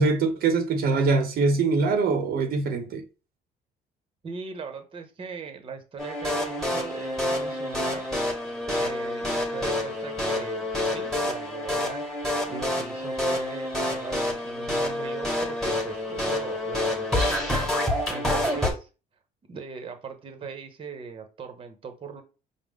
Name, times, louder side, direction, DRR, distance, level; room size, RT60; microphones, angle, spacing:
voice 1, 0.0-3.0, right 3 dB, 65° right, 0.7 m, -23 dB
voice 2, 4.2-8.0 8.6-12.0 12.5-17.3 18.1-18.9 19.5-22.2, right 5 dB, 30° right, 0.8 m, -39 dB
sound 1, 6.0-18.7, left 1 dB, ahead, 1.3 m, -28 dB
4.9 x 2.0 x 3.5 m
cardioid pair, 110°, 17 cm